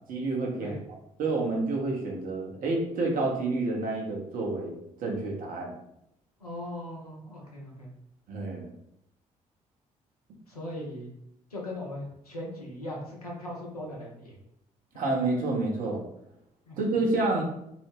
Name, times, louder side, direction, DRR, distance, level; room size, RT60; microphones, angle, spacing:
voice 1, 0.1-0.8 1.2-5.8 8.3-8.7 14.9-16.0 16.8-17.4, right 2 dB, 50° right, -1 dB, 0.7 m, -29 dB
voice 2, 6.4-7.9 10.5-11.1 11.5-14.4 16.7-16.8, left 1 dB, 90° left, -3 dB, 0.5 m, -39 dB
2.4 x 2.0 x 3.2 m, 0.78 s
figure-of-eight pair, 45°, 19 cm